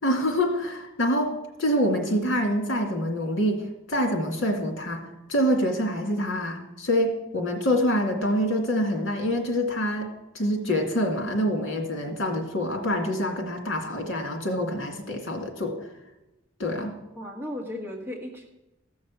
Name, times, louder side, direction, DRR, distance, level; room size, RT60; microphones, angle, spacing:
voice 1, 0.0-3.6 3.9-5.0 5.3-10.1 10.3-15.8 16.6-16.9, equal, 65° left, 3 dB, 2.3 m, -26 dB
voice 2, 17.1-18.5, left 1 dB, 10° right, -2 dB, 1.6 m, -35 dB
14.5 x 6.4 x 7.2 m, 0.98 s
head